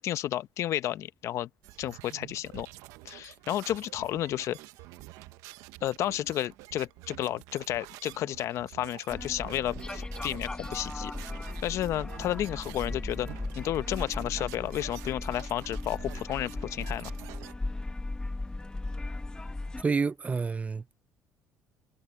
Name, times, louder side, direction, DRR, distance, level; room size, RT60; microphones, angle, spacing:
voice 1, 0.0-1.5 1.8-2.7 3.0-4.6 5.8-11.1 11.6-13.3 13.5-17.1, left 12 dB, 65° left, 0.8 m, -32 dB
sound 1, 1.6-17.5, right 18 dB, 85° right, 1.0 m, -48 dB
sound 2, 9.1-19.8, left 2 dB, 15° left, 1.5 m, -37 dB
voice 2, 19.8-21.0, right 4 dB, 25° right, 0.6 m, -29 dB
supercardioid pair, 80°, 5 cm